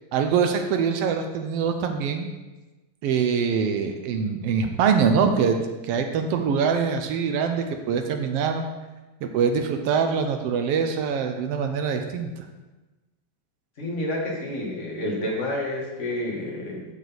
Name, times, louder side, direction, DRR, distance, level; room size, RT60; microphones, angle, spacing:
voice 1, 0.1-2.3 3.0-5.6 5.8-8.6 9.3-12.5, right 6 dB, 75° right, 5 dB, 1.4 m, -24 dB
voice 2, 13.8-16.9, left 1 dB, 35° left, -2 dB, 1.4 m, -29 dB
9.3 x 6.6 x 4.1 m, 1.1 s
omnidirectional pair, 3.4 m